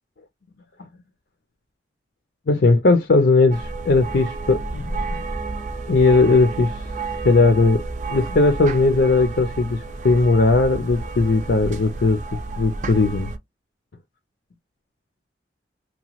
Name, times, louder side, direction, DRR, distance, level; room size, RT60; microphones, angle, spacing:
voice 1, 2.5-5.2 5.9-6.8 7.2-7.8 8.1-9.8 10.0-12.2 12.6-13.3, left 3 dB, 65° left, 0.5 m, -18 dB
sound 1, 3.5-13.4, right 3 dB, 40° right, 0.5 m, -31 dB
2.9 x 2.2 x 2.9 m
head